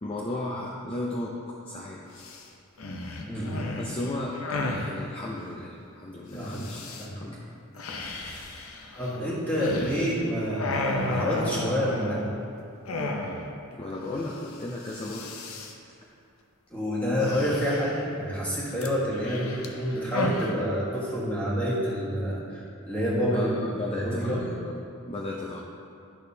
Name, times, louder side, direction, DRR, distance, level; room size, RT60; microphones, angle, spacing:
voice 1, 0.0-2.2 3.3-3.5 3.8-4.4 4.7-6.9 7.1-7.6 13.7-15.3 23.3-24.7 25.1-25.6, left 2 dB, 25° left, -4 dB, 0.5 m, -35 dB
sound 1, 2.2-2.4 2.8-4.9 6.4-7.1 7.8-10.2 10.5-12.4 12.9-13.6 13.9-14.0 14.3-14.6 14.8-15.7 17.2-18.1 18.8-20.5, left 2 dB, 70° left, 0.7 m, -33 dB
voice 2, 8.9-12.2 16.7-23.5 23.9-24.4, equal, 5° left, -8 dB, 1.5 m, -28 dB
10.5 x 6.3 x 2.8 m, 2.5 s
head